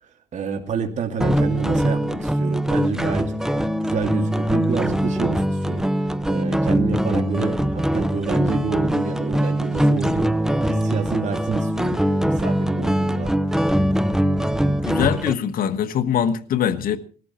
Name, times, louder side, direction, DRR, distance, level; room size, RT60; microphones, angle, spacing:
voice 1, 0.0-3.3 3.8-12.0 12.3-13.3, right 5 dB, 45° right, 2.6 m, -28 dB
sound 1, 1.2-15.3, equal, 5° right, 0.7 m, -22 dB
voice 2, 14.8-17.0, left 9 dB, 60° left, 1.5 m, -22 dB
20.5 x 13.5 x 4.5 m
cardioid pair, 110°, 17 cm